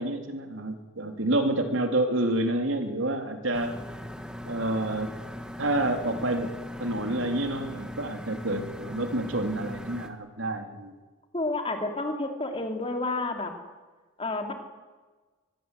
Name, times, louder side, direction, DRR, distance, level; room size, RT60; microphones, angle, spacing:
voice 1, 0.0-3.8 4.4-5.1 5.6-10.9, right 1 dB, 70° right, 5 dB, 3.1 m, -28 dB
sound 1, 3.5-10.1, left 1 dB, 5° right, 1.6 m, -39 dB
voice 2, 11.3-13.5 14.2-14.5, left 2 dB, 25° left, 4 dB, 3.1 m, -30 dB
23.5 x 21.5 x 8.3 m, 1.3 s
head